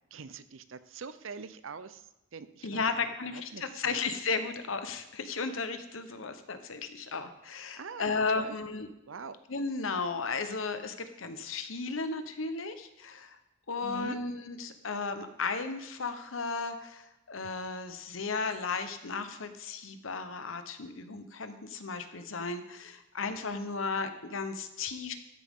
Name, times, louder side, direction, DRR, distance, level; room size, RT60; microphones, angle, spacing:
voice 1, 0.1-4.0 6.1-6.2 7.8-8.6 9.1-9.3 13.8-14.2, right 5 dB, 75° right, 13 dB, 0.6 m, -44 dB
voice 2, 2.6-8.9 9.5-13.4 13.7-25.1, left 4 dB, 75° left, 9 dB, 1.1 m, -34 dB
13.5 x 10.5 x 3.7 m, 0.91 s
head